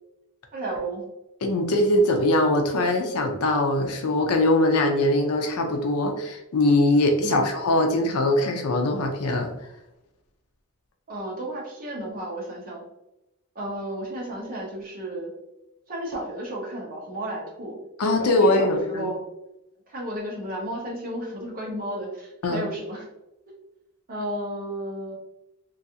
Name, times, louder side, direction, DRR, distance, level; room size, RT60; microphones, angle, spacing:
voice 1, 0.5-1.0 7.2-7.5 11.1-12.8 13.5-15.3 15.9-17.8 18.2-19.2 19.9-23.1 24.1-25.2, right 1 dB, 40° right, -3 dB, 0.9 m, -33 dB
voice 2, 1.4-9.5 18.0-19.1 22.4-22.7, left 1 dB, 90° left, 4 dB, 0.5 m, -22 dB
3.1 x 2.5 x 2.7 m, 0.91 s
head